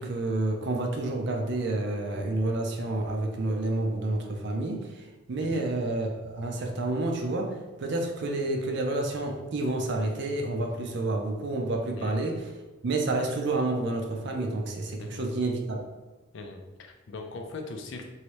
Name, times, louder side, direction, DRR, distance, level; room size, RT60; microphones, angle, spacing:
voice 1, 0.0-12.4 12.8-15.8, right 2 dB, 55° right, 2 dB, 0.5 m, -29 dB
voice 2, 16.3-18.0, left 3 dB, 60° left, 3 dB, 0.4 m, -40 dB
3.1 x 2.7 x 3.0 m, 1.2 s
head